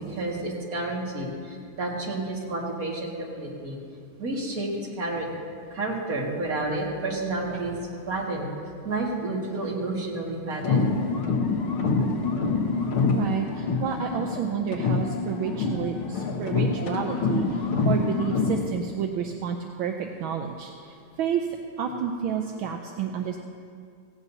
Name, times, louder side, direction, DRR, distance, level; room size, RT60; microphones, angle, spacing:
voice 1, 0.0-3.8 4.2-4.7 5.0-5.3 5.7-7.8 8.1-8.5 8.8-10.8, right 2 dB, 45° right, -3 dB, 2.3 m, -30 dB
sound 1, 10.5-14.4 14.7-18.7, left 4 dB, 80° left, 1.9 m, -26 dB
voice 2, 13.1-21.5 21.8-23.4, right 7 dB, 75° right, 3 dB, 1.5 m, -30 dB
18.0 x 16.0 x 2.7 m, 2.3 s
omnidirectional pair, 2.3 m